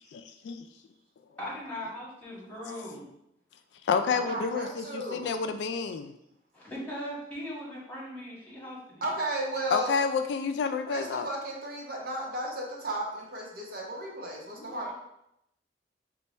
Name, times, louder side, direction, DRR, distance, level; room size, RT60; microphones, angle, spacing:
voice 1, 0.1-0.7 3.8-6.1 9.7-11.3, left 5 dB, 75° left, 8 dB, 0.3 m, -29 dB
voice 2, 1.4-3.1 4.1-4.5 6.5-9.1 14.5-14.9, equal, 10° left, -7 dB, 1.6 m, -39 dB
voice 3, 4.3-5.3 9.0-10.1 10.9-14.9, right 1 dB, 55° right, -2 dB, 0.9 m, -34 dB
4.3 x 2.3 x 4.1 m, 0.80 s
head